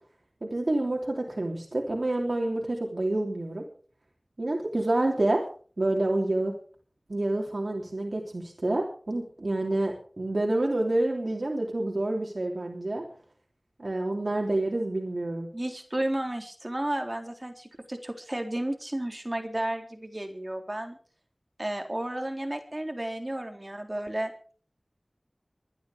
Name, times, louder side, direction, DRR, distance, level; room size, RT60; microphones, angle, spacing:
voice 1, 0.4-3.6 4.4-5.4 5.8-6.5 7.1-13.0 13.8-15.5, right 2 dB, 70° right, 0 dB, 3.3 m, -28 dB
voice 2, 15.5-21.0 21.6-24.3, right 1 dB, 35° right, 4 dB, 3.8 m, -32 dB
23.5 x 10.5 x 5.2 m, 0.42 s
wide cardioid pair, 50°, 0 cm